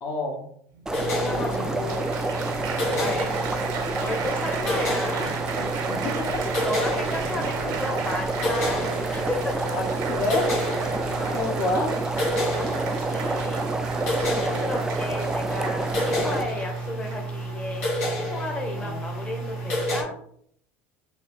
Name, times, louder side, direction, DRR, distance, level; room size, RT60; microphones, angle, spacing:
voice 1, 0.0-0.4 1.4-1.8 2.8-3.2 5.9-6.4 7.2-7.7 9.7-10.5 11.3-11.9 14.4-14.6 18.7-19.1, left 2 dB, 50° left, 0 dB, 1.0 m, -30 dB
Applause, 0.8-0.9 1.5-17.4 18.2-18.5, right 6 dB, 60° right, 0.7 m, -36 dB
sound 1, 0.9-20.0, equal, 80° left, 1.3 m, -30 dB
sound 2, 0.9-16.4, right 2 dB, 10° right, 0.3 m, -29 dB
voice 2, 1.2-2.1 3.0-5.7 6.7-9.7 11.1-11.4 12.5-13.7 14.2-17.8 18.3-20.1, left 2 dB, 15° left, 1 dB, 0.9 m, -34 dB
3.2 x 3.1 x 3.0 m, 0.66 s
hypercardioid pair, 75°, 7 cm